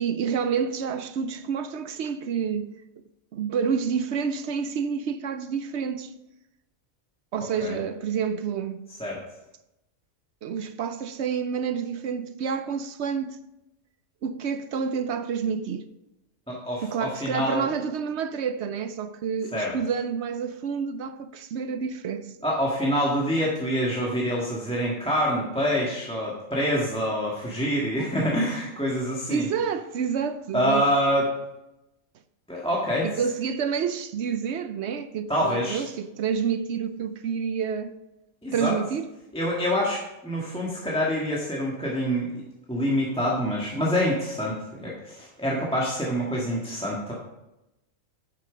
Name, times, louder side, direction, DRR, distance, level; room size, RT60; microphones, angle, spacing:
voice 1, 0.0-2.7 3.3-6.1 7.3-8.8 10.4-13.4 14.2-15.9 16.8-22.3 29.3-30.9 33.0-37.9 38.5-39.1, right 6 dB, 65° right, 0.8 m, -28 dB
voice 2, 16.5-17.7 19.5-19.7 22.4-29.5 30.5-31.2 32.5-33.1 35.3-35.8 38.4-38.8 39.3-47.1, equal, 5° left, 1.7 m, -26 dB
9.1 x 7.7 x 5.1 m
omnidirectional pair, 1.4 m